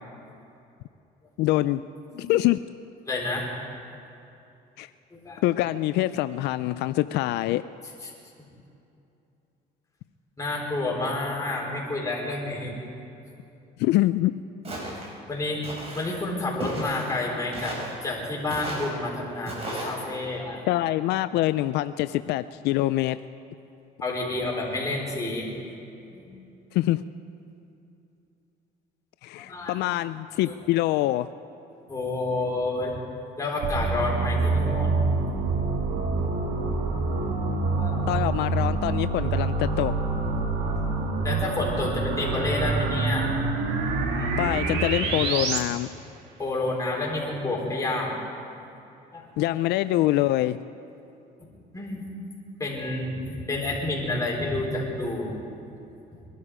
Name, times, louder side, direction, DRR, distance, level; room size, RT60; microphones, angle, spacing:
voice 1, 1.4-1.8 2.3-2.6 4.8-4.9 5.4-7.6 13.8-14.3 20.7-23.2 26.7-27.0 29.2-31.3 38.1-39.9 44.4-45.9 49.4-50.6, left 16 dB, 85° left, 13 dB, 0.4 m, -24 dB
voice 2, 3.1-3.5 5.1-5.4 8.0-8.1 10.4-12.7 15.3-15.6 15.9-17.7 18.0-20.7 24.0-25.5 26.1-26.3 29.4-29.7 30.5-30.6 31.9-32.9 33.4-35.0 37.8-38.2 41.2-43.3 44.1-44.3 46.4-48.1 49.1-49.2 51.4-51.5 51.7-52.0 52.6-55.3 56.1-56.2, left 2 dB, 20° left, -3 dB, 4.4 m, -29 dB
Walk footsteps, 14.6-15.1 15.6-16.1 16.6-17.1 17.5-17.9 18.5-18.9 19.4-19.9, right 1 dB, 35° right, 4.6 m, -34 dB
sound 1, 33.6-45.6, right 3 dB, 90° right, 1.8 m, -26 dB
23.0 x 12.5 x 5.0 m, 2.8 s
cardioid pair, 110°, 17 cm